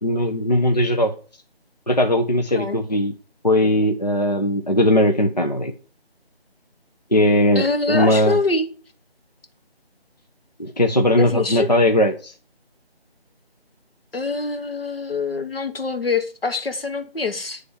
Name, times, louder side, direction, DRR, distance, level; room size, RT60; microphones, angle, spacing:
voice 1, 0.0-1.1 1.9-3.1 3.4-5.7 7.1-8.4 10.6-12.3, left 1 dB, 40° left, 0.6 m, -19 dB
voice 2, 7.5-8.7 11.2-11.7 14.1-17.6, left 3 dB, 65° left, 1.2 m, -24 dB
9.7 x 3.3 x 6.2 m
figure-of-eight pair, 180°, 32 cm